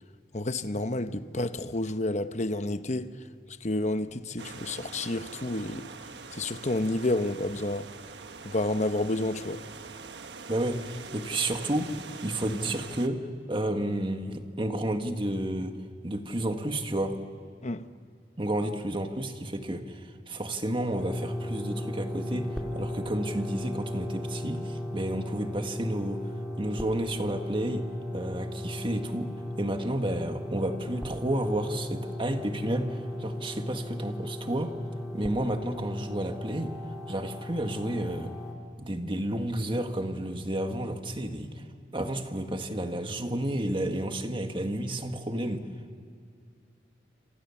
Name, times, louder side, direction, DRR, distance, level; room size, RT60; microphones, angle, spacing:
voice 1, 0.3-3.1 3.5-5.9 6.3-7.9 8.4-9.6 17.6-17.8, left 2 dB, 40° left, 1.0 m, -30 dB
sound 1, 4.4-13.1, right 4 dB, 75° right, 1.4 m, -44 dB
voice 2, 10.5-12.0 12.2-17.2 18.4-26.3 26.6-27.9 28.1-34.8 35.1-36.7 37.1-38.3 38.8-41.6 41.9-45.7, right 1 dB, 30° right, 1.8 m, -31 dB
sound 2, 21.0-38.5, left 1 dB, ahead, 2.6 m, -36 dB
28.5 x 26.5 x 7.2 m
head